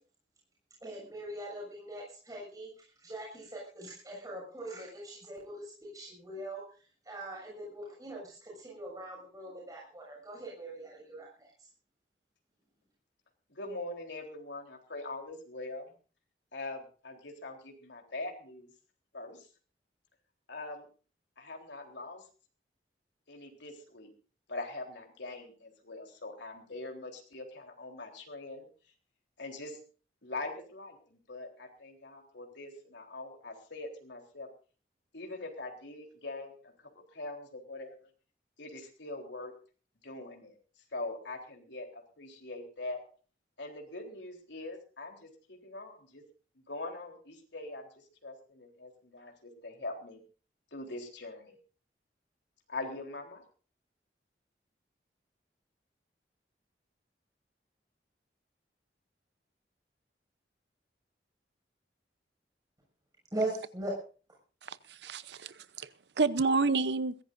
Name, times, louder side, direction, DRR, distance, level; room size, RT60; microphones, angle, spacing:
voice 1, 0.8-11.7 63.3-63.9, right 1 dB, 20° right, -3 dB, 6.7 m, -41 dB
voice 2, 13.5-15.9 16.5-18.7 19.1-19.5 20.5-20.9 21.4-22.2 23.3-24.1 24.5-28.7 29.4-29.8 30.2-34.5 35.1-38.1 38.6-39.5 40.0-40.5 40.9-43.0 43.6-46.2 46.7-50.2 50.7-51.6 52.7-53.4, left 2 dB, 90° left, 2 dB, 3.8 m, -42 dB
voice 3, 64.6-65.9 66.2-67.2, right 4 dB, 75° right, 16 dB, 0.8 m, -29 dB
22.0 x 16.0 x 2.6 m, 0.37 s
head